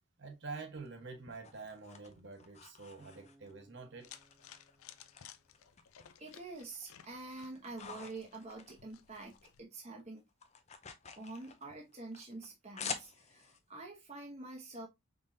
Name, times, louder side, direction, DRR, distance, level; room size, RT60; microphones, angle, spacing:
voice 1, 0.2-4.2, right 4 dB, 55° right, 1.2 m, -47 dB
sound 1, 0.8-3.6 4.1-5.2 5.5-6.6 6.9-9.5 9.8-13.6, left 6 dB, 30° left, 0.6 m, -48 dB
Acoustic guitar, 3.0-6.2, right 1 dB, ahead, 1.1 m, -67 dB
sound 2, 4.0-9.6, left 10 dB, 85° left, 0.5 m, -58 dB
voice 2, 6.2-10.2 11.2-14.9, right 2 dB, 30° right, 1.0 m, -47 dB
4.9 x 3.6 x 2.7 m
head